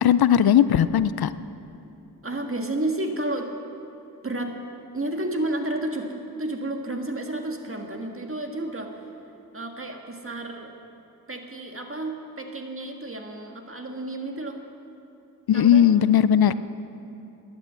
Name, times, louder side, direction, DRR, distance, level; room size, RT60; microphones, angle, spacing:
voice 1, 0.0-1.3 15.5-16.5, left 9 dB, 70° left, 15 dB, 0.5 m, -18 dB
voice 2, 2.2-3.5 4.2-4.5 4.9-8.9 9.5-10.7 11.3-14.6 15.5-15.9, right 1 dB, 35° right, 3 dB, 1.7 m, -31 dB
12.5 x 10.5 x 7.5 m, 2.9 s
cardioid pair, 45°, 38 cm